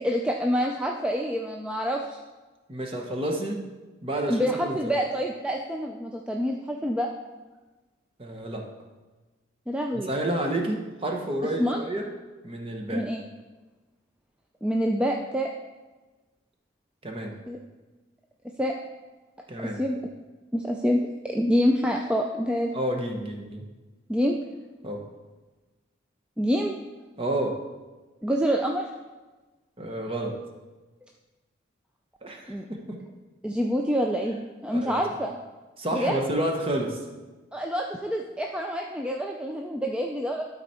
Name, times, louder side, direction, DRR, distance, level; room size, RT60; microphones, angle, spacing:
voice 1, 0.0-2.2 4.3-7.1 9.7-10.1 11.6-11.8 12.9-13.2 14.6-15.5 17.5-17.6 18.6-18.7 19.8-20.0 20.5-22.7 24.1-24.4 26.4-26.7 28.2-28.9 32.5-32.7 33.4-35.4 35.9-36.2 37.5-40.5, equal, 5° right, 1 dB, 0.3 m, -26 dB
voice 2, 2.7-3.7 4.0-4.9 8.2-8.7 10.0-12.1 12.4-13.0 17.0-17.4 19.5-19.8 22.7-23.7 24.8-25.0 27.2-27.6 29.8-30.4 32.2-32.5 32.9-33.0 34.7-35.0 35.8-37.0, right 1 dB, 30° right, 2 dB, 1.0 m, -30 dB
12.0 x 4.1 x 4.3 m, 1.2 s
head